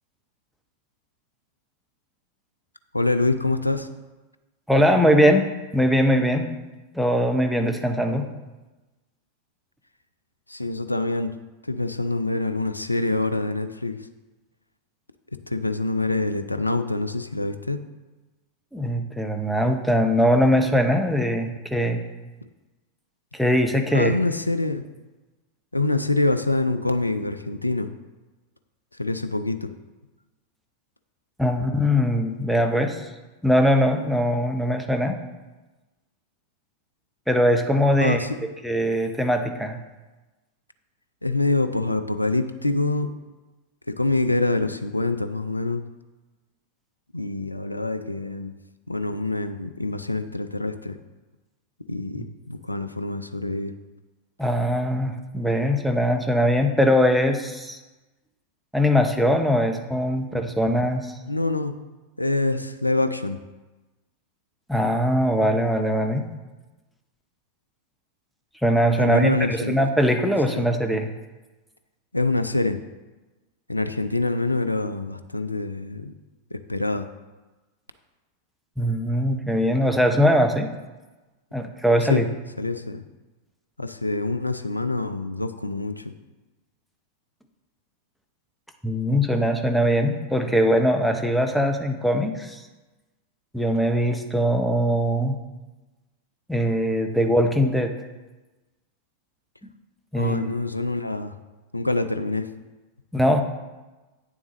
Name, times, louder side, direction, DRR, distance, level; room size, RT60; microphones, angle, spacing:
voice 1, 2.9-3.9 10.5-11.3 11.6-14.1 15.5-17.8 23.9-24.8 25.7-27.9 28.9-29.7 38.0-38.4 41.2-43.1 43.9-45.8 47.1-48.5 48.9-51.0 51.9-53.7 61.3-61.8 62.2-63.4 69.0-69.8 70.5-70.7 72.1-72.8 73.7-76.1 76.5-77.1 82.1-82.2 82.6-83.0 83.8-86.1 100.2-101.4 101.7-102.5, left 2 dB, 85° left, 11 dB, 0.4 m, -25 dB
voice 2, 4.7-5.4 5.7-6.5 6.9-8.3 18.7-22.0 23.3-24.1 31.4-33.1 33.4-35.2 37.3-38.2 38.6-39.8 54.4-57.8 58.7-61.1 64.7-66.2 68.6-71.1 78.8-80.7 81.5-82.2 88.8-92.6 93.5-95.4 96.5-97.9 100.1-100.5 103.1-103.4, equal, ahead, 5 dB, 0.8 m, -21 dB
9.1 x 7.2 x 3.0 m, 1.1 s
figure-of-eight pair, 90°, 0 cm